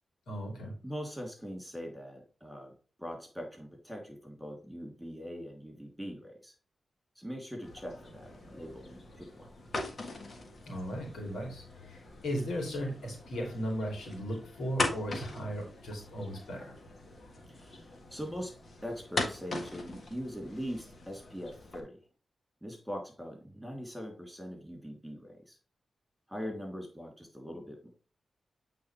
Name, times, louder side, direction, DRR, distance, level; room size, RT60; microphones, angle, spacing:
voice 1, 0.3-0.7 10.7-16.7, equal, 85° left, 1 dB, 2.7 m, -36 dB
voice 2, 0.8-2.7 3.0-6.5 7.2-9.5 17.5-22.0 22.6-25.6 26.3-27.9, equal, ahead, 2 dB, 3.0 m, -42 dB
sound 1, 7.6-21.8, left 2 dB, 55° left, 1.5 m, -41 dB
8.4 x 4.0 x 3.3 m, 0.36 s
cardioid pair, 45°, 0 cm